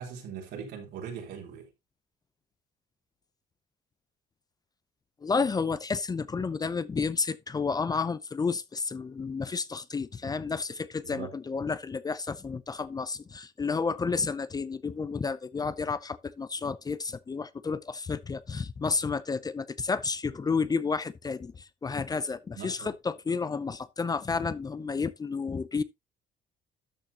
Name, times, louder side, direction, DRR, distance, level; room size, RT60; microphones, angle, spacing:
voice 1, 0.0-1.7 11.0-11.3 22.5-22.9, right 7 dB, 80° right, 3.8 m, -40 dB
voice 2, 5.2-25.8, left 4 dB, 25° left, 0.5 m, -31 dB
12.5 x 6.4 x 2.9 m
cardioid pair, 110°, 17 cm